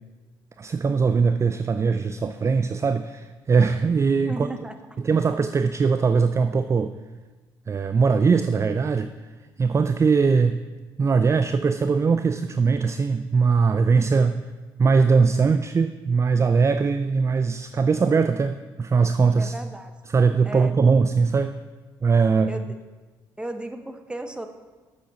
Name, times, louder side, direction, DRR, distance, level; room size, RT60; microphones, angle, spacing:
voice 1, 0.6-4.5 5.0-6.9 7.7-9.1 9.6-10.7 11.0-14.4 14.8-19.5 20.1-21.6 22.0-22.5, right 5 dB, 25° right, 11 dB, 0.3 m, -21 dB
voice 2, 4.3-4.8 19.4-19.9 20.4-20.7 22.5-22.7 23.4-24.5, right 1 dB, 10° right, 8 dB, 0.8 m, -34 dB
8.2 x 6.7 x 4.2 m, 1.3 s
hypercardioid pair, 50°, 10 cm